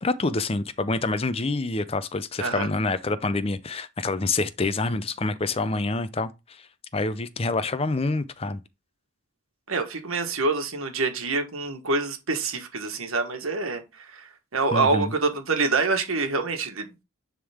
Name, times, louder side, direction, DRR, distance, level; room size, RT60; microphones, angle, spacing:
voice 1, 0.0-6.3 6.9-8.6 14.7-15.1, left 3 dB, 25° left, 0.5 m, -27 dB
voice 2, 9.7-16.9, right 3 dB, 80° right, 1.4 m, -26 dB
9.9 x 3.6 x 3.5 m
head